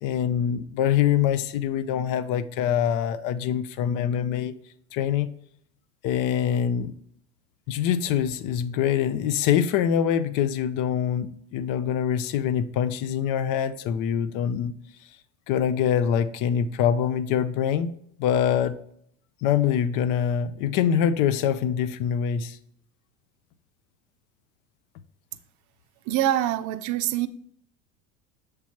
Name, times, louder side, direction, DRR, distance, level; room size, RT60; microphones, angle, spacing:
voice 1, 0.0-4.5 4.9-5.3 6.0-6.9 7.7-14.7 15.5-17.9 18.2-18.8 19.4-22.6, left 9 dB, 55° left, 14 dB, 0.6 m, -24 dB
voice 2, 26.1-27.3, right 12 dB, 50° right, 11 dB, 0.5 m, -24 dB
7.0 x 3.3 x 4.4 m, 0.67 s
hypercardioid pair, 80°, 39 cm